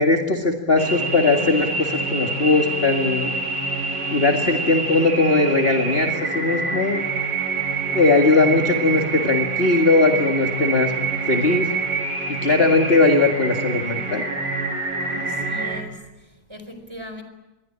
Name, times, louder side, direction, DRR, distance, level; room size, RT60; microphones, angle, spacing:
voice 1, 0.0-3.3 4.1-7.0 7.9-10.9 11.3-11.7 12.3-14.2, left 3 dB, 30° left, 3 dB, 2.1 m, -19 dB
sound 1, 0.8-15.8, right 4 dB, 55° right, 4.0 m, -26 dB
voice 2, 15.0-17.2, equal, 15° right, 7 dB, 4.5 m, -39 dB
27.5 x 22.5 x 8.8 m, 1.0 s
omnidirectional pair, 2.1 m